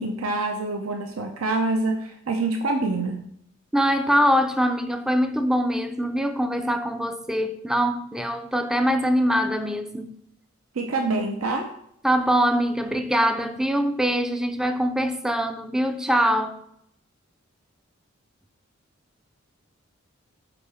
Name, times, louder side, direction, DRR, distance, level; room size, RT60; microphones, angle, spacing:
voice 1, 0.0-3.2 10.7-11.7, right 2 dB, 90° right, 0.6 m, -26 dB
voice 2, 3.7-10.2 12.0-16.6, equal, 5° right, 0.3 m, -23 dB
5.0 x 4.6 x 4.9 m
head